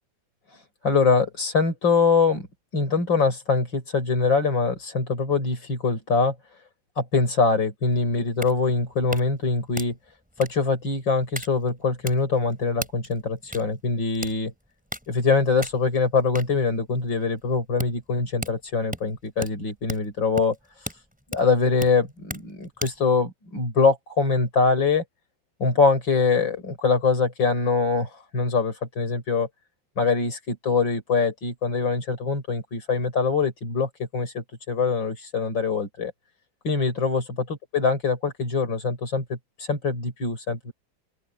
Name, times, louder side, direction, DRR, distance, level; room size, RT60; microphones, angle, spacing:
voice 1, 0.8-2.5 2.7-6.3 7.0-10.0 10.4-14.5 15.1-20.6 21.3-25.0 25.6-29.5 30.0-36.1 36.6-37.2 37.7-40.7, left 4 dB, 70° left, 6.5 m, -23 dB
sound 1, 7.9-23.1, equal, 5° right, 4.5 m, -39 dB
open air
omnidirectional pair, 2.1 m